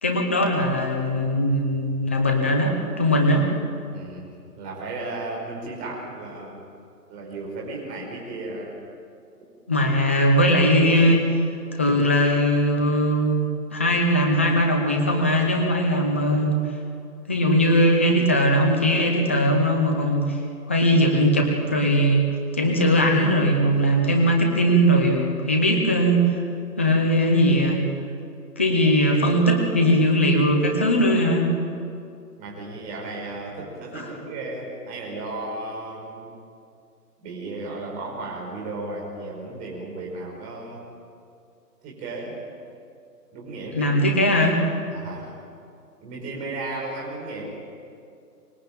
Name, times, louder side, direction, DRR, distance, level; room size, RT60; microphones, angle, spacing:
voice 1, 0.0-3.5 9.7-11.4 11.7-16.6 17.3-20.4 20.7-22.3 22.5-26.4 26.8-27.8 28.6-31.5 33.9-34.1 43.7-44.6, equal, 10° left, 3 dB, 0.6 m, -20 dB
voice 2, 3.9-4.3 4.6-6.6 7.1-8.7 32.4-36.4 37.2-40.8 41.8-42.4 43.3-44.0 44.9-45.3 46.0-47.4, right 2 dB, 15° right, -3 dB, 5.6 m, -34 dB
24.5 x 20.5 x 9.0 m, 2.4 s
hypercardioid pair, 155°, 48 cm